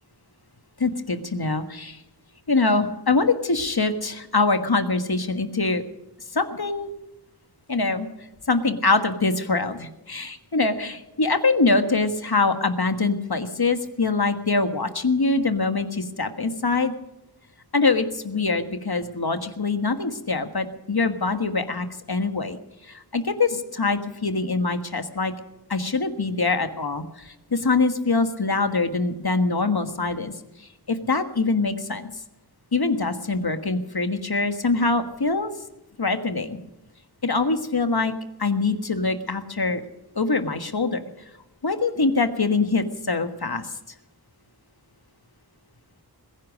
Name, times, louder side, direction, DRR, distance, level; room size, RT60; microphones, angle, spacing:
voice 1, 0.8-2.0 2.5-5.8 6.3-6.9 7.7-8.1 8.5-16.9 17.7-22.6 22.9-25.3 25.7-30.3 30.9-32.1 32.7-35.5 36.0-36.6 37.2-38.1 38.4-39.8 40.1-41.0 41.6-43.7, left 3 dB, 70° left, 8 dB, 1.6 m, -24 dB
21.0 x 10.5 x 6.4 m, 0.93 s
wide cardioid pair, 50°, 39 cm